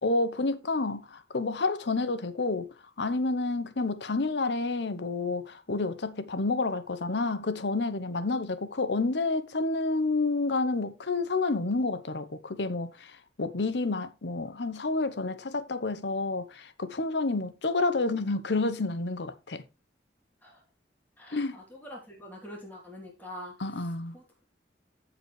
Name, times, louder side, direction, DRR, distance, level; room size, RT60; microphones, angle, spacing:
voice 1, 0.0-2.7 3.0-19.6 21.3-21.6 23.6-24.2, left 3 dB, 70° left, 0.9 m, -29 dB
voice 2, 21.2-23.5 24.1-24.4, left 1 dB, 10° left, 3.2 m, -45 dB
14.5 x 5.0 x 3.2 m
head